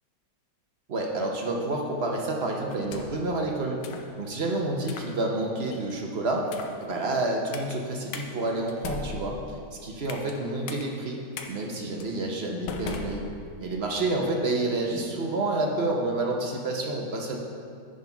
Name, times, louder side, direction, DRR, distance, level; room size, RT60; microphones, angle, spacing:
voice 1, 0.9-3.8 4.2-6.5 6.8-11.2 11.5-13.3 13.6-17.4, right 2 dB, 55° right, 0 dB, 0.7 m, -29 dB
sound 1, 2.7-3.3 3.8-4.1 4.8-5.1 5.7-6.0 6.5-6.8 7.5-7.7 8.1-8.3 8.7-10.4 10.7-10.8 11.3-11.5 12.0-12.1 12.7-13.7, left 5 dB, 75° left, 1.3 m, -38 dB
9.7 x 4.1 x 5.7 m, 2.3 s
omnidirectional pair, 2.0 m